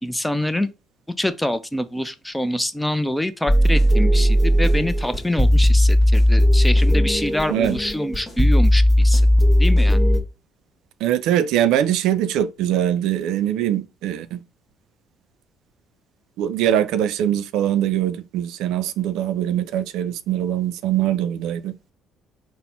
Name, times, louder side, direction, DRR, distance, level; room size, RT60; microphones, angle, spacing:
voice 1, 0.0-0.7 1.2-9.2 9.6-10.0, left 1 dB, 5° left, 0.5 m, -25 dB
sound 1, 3.5-10.2, equal, 25° left, 1.1 m, -16 dB
voice 2, 11.0-14.4 16.4-21.7, right 11 dB, 75° right, 0.3 m, -22 dB
4.1 x 2.1 x 4.0 m
hypercardioid pair, 55°, 0 cm